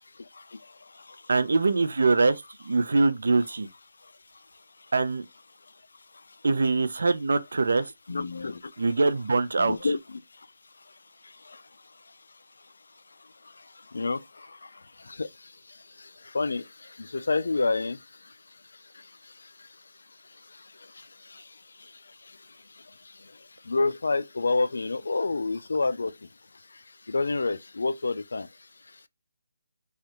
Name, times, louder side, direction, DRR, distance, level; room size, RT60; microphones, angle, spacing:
voice 1, 1.3-3.7 4.9-5.2 6.4-7.9 8.8-9.7, right 3 dB, 75° right, 0.5 m, -23 dB
voice 2, 8.1-9.0 9.6-10.2 13.9-14.5 15.1-15.3 16.3-16.6 17.0-18.0 21.3-21.4 23.7-26.1 27.1-28.5, left 3 dB, 80° left, 0.3 m, -28 dB
3.2 x 2.4 x 2.9 m
hypercardioid pair, 170°, 0 cm